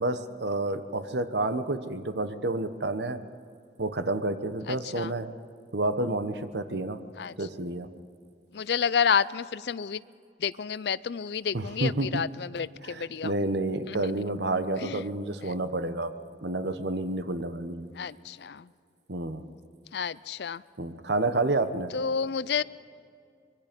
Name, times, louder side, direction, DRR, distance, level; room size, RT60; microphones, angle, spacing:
voice 1, 0.0-3.2 3.8-5.3 5.7-7.0 7.4-7.9 11.5-12.2 12.8-16.1 16.4-17.9 19.1-19.4 20.8-21.9, right 2 dB, 70° right, 10 dB, 1.1 m, -29 dB
voice 2, 4.7-5.1 7.2-7.4 8.5-10.0 10.4-13.3 13.9-14.1 14.8-15.0 15.4-15.5 18.0-18.7 19.9-20.6 21.9-22.6, left 6 dB, 65° left, 18 dB, 0.5 m, -30 dB
24.5 x 22.5 x 5.3 m, 2.3 s
head